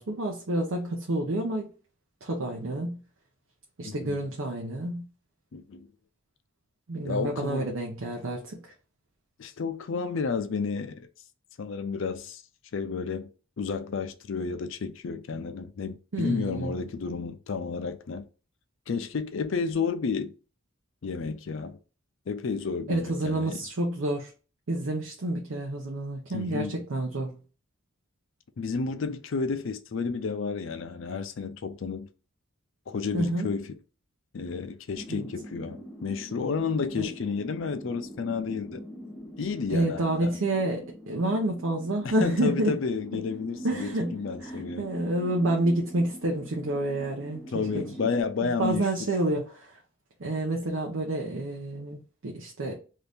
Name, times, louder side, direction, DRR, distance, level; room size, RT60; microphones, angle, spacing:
voice 1, 0.0-1.7 2.2-3.0 3.8-5.0 6.9-8.7 16.1-16.7 22.9-24.3 24.7-27.4 33.1-33.5 35.1-35.3 37.0-37.1 39.7-42.7 43.1-43.2 43.6-47.9 48.4-49.8 50.2-52.7, right 1 dB, 75° right, 0.7 m, -29 dB
voice 2, 3.8-4.2 5.5-5.9 7.0-7.7 9.4-11.1 11.6-12.4 12.7-13.3 13.6-18.3 18.9-20.3 21.0-21.8 22.3-23.6 26.3-26.8 28.6-32.1 32.9-33.8 34.3-38.8 39.4-40.4 42.0-44.9 47.5-49.1, left 5 dB, 65° left, 0.4 m, -31 dB
sound 1, 34.9-48.2, equal, 5° left, 0.8 m, -44 dB
2.7 x 2.5 x 3.4 m
head